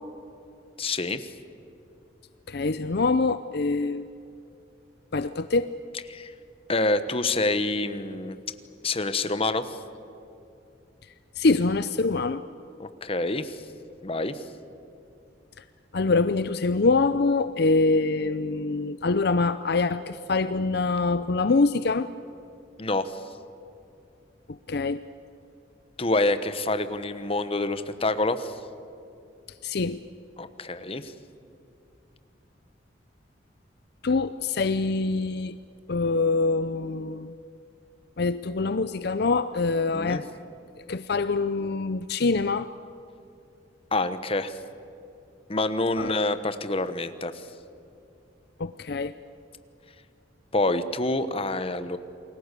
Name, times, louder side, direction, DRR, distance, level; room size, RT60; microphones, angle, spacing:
voice 1, 0.8-1.3 6.1-6.3 6.7-8.4 8.8-9.8 12.8-13.6 14.0-14.4 22.8-23.2 26.0-28.5 30.4-31.1 39.9-40.2 43.9-44.6 45.5-47.4 50.5-52.0, left 2 dB, 30° left, 11 dB, 1.1 m, -27 dB
voice 2, 2.5-4.0 5.1-5.7 11.4-12.4 15.9-22.1 24.7-25.0 29.6-30.0 34.0-35.6 35.9-37.3 38.2-40.3 40.9-42.7 46.0-46.1 48.6-49.1, left 3 dB, 60° left, 12 dB, 0.6 m, -24 dB
29.0 x 21.5 x 8.3 m, 2.7 s
head